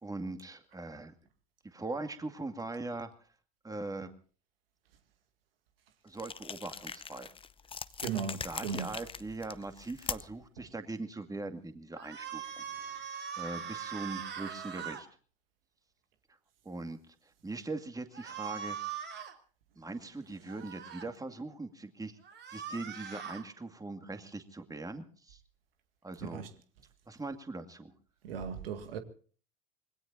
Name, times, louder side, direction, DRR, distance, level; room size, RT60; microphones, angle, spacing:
voice 1, 0.0-1.1 1.6-3.1 3.6-4.1 6.0-7.3 8.4-12.6 13.4-15.1 16.6-19.0 19.8-22.2 22.5-25.4 26.0-26.5 27.1-27.9, right 2 dB, 10° right, 2.2 m, -41 dB
sound 1, 6.1-10.5, left 6 dB, 20° left, 0.8 m, -42 dB
voice 2, 8.0-8.9 26.2-26.5 28.2-29.0, right 7 dB, 80° right, 2.0 m, -37 dB
sound 2, 12.0-15.0 18.1-19.3 20.5-21.1 22.2-23.4, right 8 dB, 35° right, 3.3 m, -41 dB
26.0 x 20.5 x 2.7 m
hypercardioid pair, 75°, 29 cm